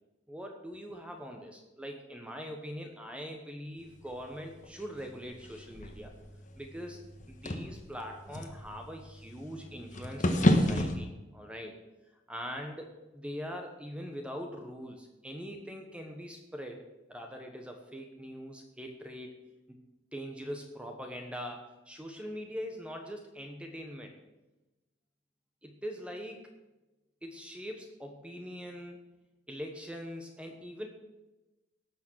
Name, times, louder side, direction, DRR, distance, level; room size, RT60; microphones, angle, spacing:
voice 1, 0.3-6.1 6.6-7.0 7.3-11.7 12.3-16.8 17.1-19.4 19.7-19.8 20.1-24.1 25.6-26.5 27.2-29.0 29.5-30.9, equal, 5° right, 3 dB, 1.1 m, -42 dB
sound 1, 3.8-11.0, left 1 dB, 40° left, 1.3 m, -32 dB
17.5 x 6.5 x 6.3 m, 1.1 s
head